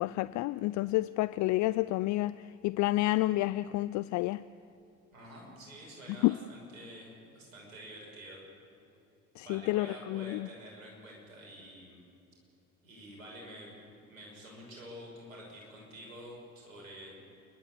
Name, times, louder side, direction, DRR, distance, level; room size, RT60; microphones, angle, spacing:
voice 1, 0.0-4.4 6.2-6.3 9.4-10.5, left 18 dB, 45° left, 0.5 m, -29 dB
voice 2, 5.1-8.4 9.4-12.0 12.8-17.2, equal, 80° right, 6.2 m, -48 dB
28.5 x 11.5 x 9.6 m
hypercardioid pair, 60°, 41 cm